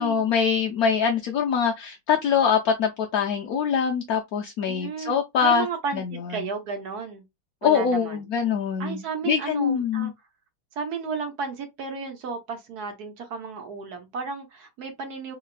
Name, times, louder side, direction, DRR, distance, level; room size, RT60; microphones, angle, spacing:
voice 1, 0.0-5.7 5.9-6.0 6.4-6.5 7.6-10.1, left 7 dB, 85° left, 0.8 m, -24 dB
voice 2, 4.6-6.0 6.3-7.2 7.6-8.2 8.8-10.1 10.8-15.4, right 5 dB, 60° right, 1.2 m, -33 dB
3.9 x 2.9 x 2.4 m
omnidirectional pair, 2.2 m